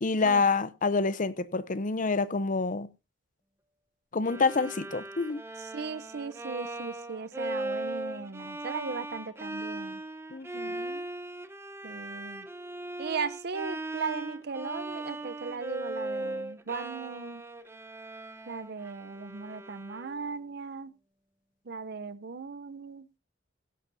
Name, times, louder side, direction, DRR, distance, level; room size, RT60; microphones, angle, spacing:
voice 1, 0.0-2.9 4.1-5.4 10.3-11.0, left 4 dB, 45° left, 0.7 m, -27 dB
Bowed string instrument, 4.2-20.3, right 2 dB, 15° right, 0.9 m, -39 dB
voice 2, 5.7-10.0 11.8-12.5 13.0-17.4 18.5-20.9 21.7-23.1, right 5 dB, 60° right, 0.7 m, -37 dB
16.0 x 11.0 x 2.7 m
head